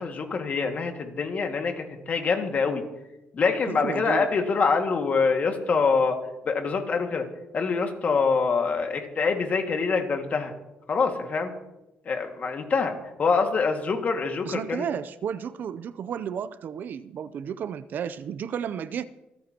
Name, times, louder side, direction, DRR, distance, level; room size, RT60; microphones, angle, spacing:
voice 1, 0.0-2.8 3.3-6.2 6.5-7.3 7.5-10.5 10.9-11.5 12.1-12.9 13.2-14.9, left 4 dB, 45° left, 4 dB, 2.0 m, -25 dB
voice 2, 3.7-4.3 14.5-19.1, right 8 dB, 60° right, 15 dB, 0.5 m, -33 dB
27.0 x 9.4 x 2.9 m, 0.95 s
cardioid pair, 110°, 4 cm